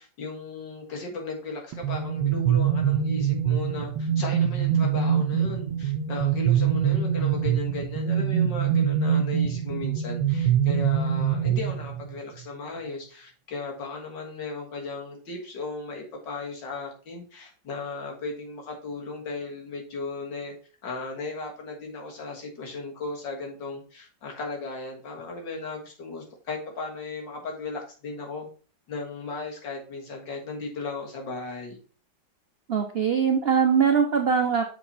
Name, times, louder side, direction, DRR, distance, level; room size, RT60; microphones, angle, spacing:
voice 1, 0.0-20.5 20.8-28.5 28.9-31.8, left 3 dB, 70° left, 1 dB, 2.3 m, -36 dB
sound 1, 1.7-12.2, right 8 dB, 90° right, 1.5 m, -24 dB
voice 2, 32.7-34.6, right 6 dB, 75° right, 4 dB, 0.5 m, -22 dB
7.0 x 4.6 x 4.2 m, 0.39 s
omnidirectional pair, 2.1 m